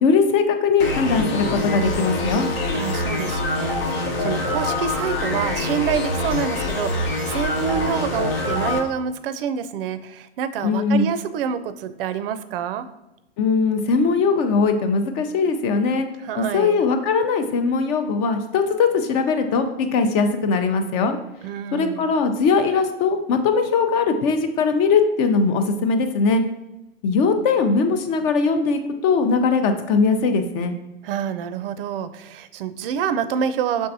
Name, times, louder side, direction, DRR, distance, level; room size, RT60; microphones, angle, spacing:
voice 1, 0.0-2.5 10.6-11.1 13.4-16.1 16.4-21.2 21.7-26.4 27.0-30.8, left 4 dB, 40° left, 7 dB, 0.6 m, -20 dB
sound 1, 0.8-8.8, left 2 dB, 65° left, 1.0 m, -25 dB
voice 2, 2.7-12.9 16.2-16.8 21.4-22.2 31.0-33.9, right 8 dB, 60° right, 12 dB, 0.5 m, -27 dB
5.5 x 3.4 x 2.6 m, 0.95 s
hypercardioid pair, 110°, 32 cm